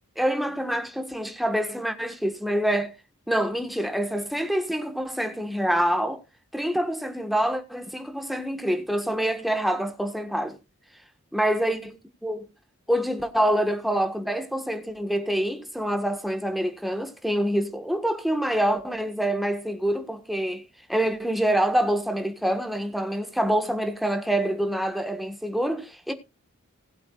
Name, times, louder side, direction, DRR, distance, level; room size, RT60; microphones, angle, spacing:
voice 1, 0.2-2.9 3.3-6.2 6.5-10.6 11.3-12.0 12.2-12.5 12.9-20.6 20.9-26.1, right 1 dB, ahead, 1.4 m, -26 dB
19.0 x 8.4 x 2.4 m
head